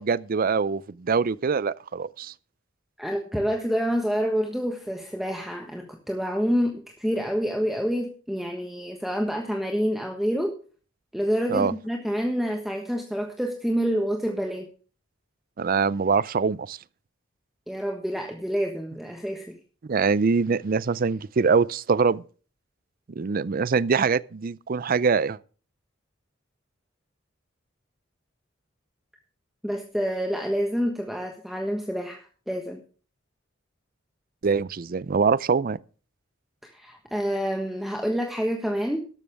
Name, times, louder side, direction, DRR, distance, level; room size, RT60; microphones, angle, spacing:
voice 1, 0.0-2.3 11.5-11.7 15.6-16.8 19.9-22.2 23.2-25.4 34.4-35.8, right 5 dB, 45° right, 0.5 m, -23 dB
voice 2, 3.0-10.5 11.1-14.7 17.7-19.6 29.6-32.8 36.6-39.1, equal, ahead, 1.3 m, -28 dB
13.0 x 12.5 x 3.5 m
head